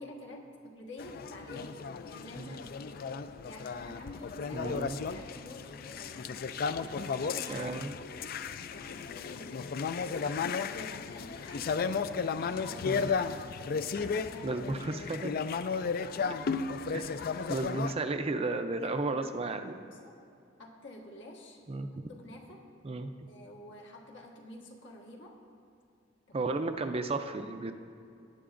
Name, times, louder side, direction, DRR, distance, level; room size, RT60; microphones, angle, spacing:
voice 1, 0.0-3.0 3.4-6.3 7.0-7.8 8.1-13.2 13.9-14.6 16.1-16.5 18.7-20.2 20.6-21.6 22.1-22.7 23.3-25.4 26.3-26.5, left 1 dB, 75° left, -1 dB, 1.5 m, -49 dB
sound 1, 1.0-17.9, left 5 dB, 50° left, 0.3 m, -34 dB
voice 2, 4.5-5.0 7.5-7.9 12.8-13.1 14.4-15.3 16.9-17.1 17.5-19.7 21.7-22.1 22.8-23.1 26.3-27.7, right 3 dB, 30° right, 8 dB, 0.4 m, -33 dB
18.0 x 9.5 x 2.5 m, 2.5 s
head